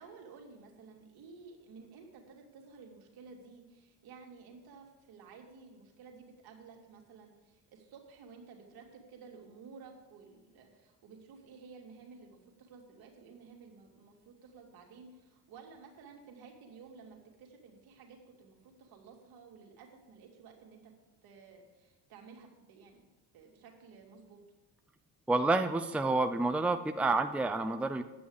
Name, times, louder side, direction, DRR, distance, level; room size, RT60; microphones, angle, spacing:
voice 1, 0.0-20.9 21.2-24.4, right 5 dB, 70° right, 1 dB, 2.4 m, -54 dB
voice 2, 25.3-28.0, right 3 dB, 5° right, 7 dB, 0.6 m, -29 dB
9.5 x 6.2 x 8.6 m, 1.1 s
supercardioid pair, 75°, 39 cm